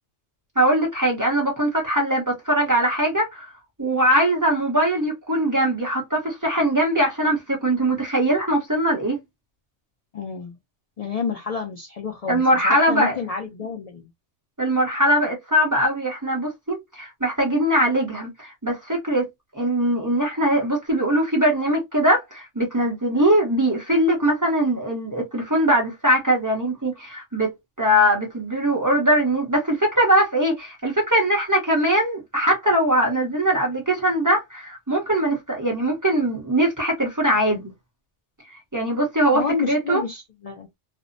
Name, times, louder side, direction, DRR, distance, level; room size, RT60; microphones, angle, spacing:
voice 1, 0.6-3.5 3.8-9.2 12.3-13.1 14.6-19.3 19.5-37.7 38.7-40.0, right 1 dB, 20° right, 0.7 m, -21 dB
voice 2, 10.1-10.6 11.0-14.1 39.3-40.7, left 6 dB, 70° left, 0.3 m, -29 dB
2.5 x 2.0 x 2.4 m
omnidirectional pair, 1.3 m